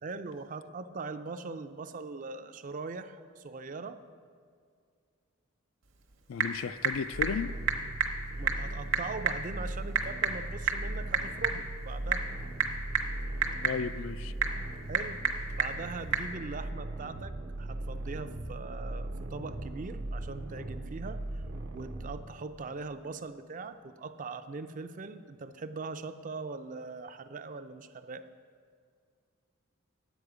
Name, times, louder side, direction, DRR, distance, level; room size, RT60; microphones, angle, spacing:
voice 1, 0.0-4.0 8.4-12.2 14.9-15.2 15.6-21.4 21.7-28.3, right 4 dB, 40° right, 10 dB, 0.4 m, -41 dB
Typing / Telephone, 5.8-16.3, right 5 dB, 60° right, 0.9 m, -33 dB
voice 2, 6.3-7.5 13.6-14.3, left 6 dB, 70° left, 14 dB, 0.3 m, -34 dB
sound 1, 7.1-22.2, right 1 dB, 85° right, 1.0 m, -39 dB
10.0 x 8.1 x 4.9 m, 2.2 s
head